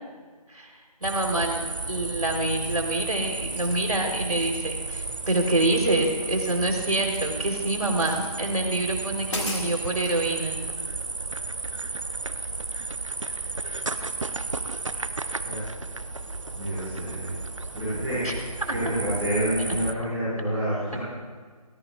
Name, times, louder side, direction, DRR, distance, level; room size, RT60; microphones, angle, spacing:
sound 1, 1.0-19.9, right 3 dB, 55° right, 0.7 m, -33 dB
voice 1, 1.0-10.6 18.2-18.3 18.6-18.7 19.6-19.7, right 2 dB, 70° right, 2 dB, 3.6 m, -26 dB
sound 2, 2.6-2.9 3.4-3.8 4.2-4.6 5.2-5.9 6.2-7.4 7.9-8.3 8.9-9.0 9.2-10.2, left 2 dB, 50° left, 3.1 m, -39 dB
sound 3, 5.8-7.9, right 3 dB, 20° right, 1.3 m, -35 dB
voice 2, 16.5-17.3 17.7-18.2 18.7-21.0, right 1 dB, 5° left, -19 dB, 4.8 m, -28 dB
22.0 x 20.0 x 2.4 m, 1.5 s
figure-of-eight pair, 175°, 20 cm